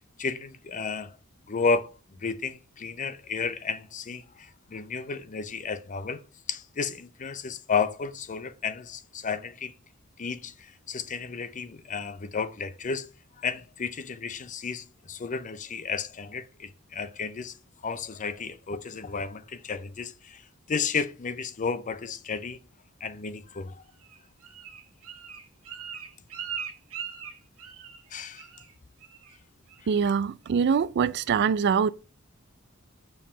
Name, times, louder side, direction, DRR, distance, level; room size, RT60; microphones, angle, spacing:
voice 1, 0.2-1.2 1.5-1.9 2.2-6.2 6.5-9.7 10.2-13.1 13.4-17.6 17.8-20.4 20.7-22.6 23.0-23.8 28.1-28.4, left 5 dB, 35° left, 0.5 m, -32 dB
Bird, 24.0-28.1 28.4-28.7 29.0-29.4 29.7-30.1 30.5-30.6, right 7 dB, 85° right, 1.5 m, -40 dB
voice 2, 29.9-31.9, right 6 dB, 50° right, 0.3 m, -24 dB
5.6 x 4.6 x 6.0 m
head